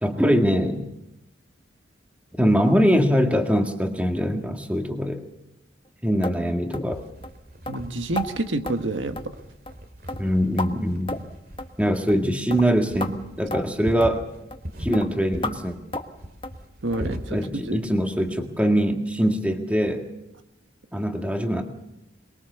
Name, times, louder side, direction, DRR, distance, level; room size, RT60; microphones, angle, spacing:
voice 1, 0.0-0.8 2.3-5.2 6.0-7.0 10.2-11.2 11.8-14.2 14.8-15.8 17.0-20.0 20.9-21.6, equal, 5° right, 4 dB, 1.9 m, -23 dB
sound 1, 6.2-6.4 6.7-6.9 7.2-7.4 7.7-7.8 8.2-8.3 8.7-8.8 9.2-9.4 9.7-9.8 10.1-10.7 11.1-11.3 11.6-11.7 12.1-12.2 12.5-12.7 13.0-13.1 13.5-13.6 14.0-14.1 14.5-14.7 14.9-15.1 15.4-15.6 15.9-16.1 16.4-16.6 16.9-17.1 17.4-17.5 17.9-18.0 18.4-18.5, left 2 dB, 25° left, 1.3 m, -32 dB
sound 2, 6.9-18.3, equal, 50° right, 2.5 m, -41 dB
voice 2, 7.7-9.2 16.8-17.4 17.6-17.9, right 2 dB, 85° right, 7 dB, 1.5 m, -28 dB
23.0 x 22.5 x 6.9 m, 0.88 s
head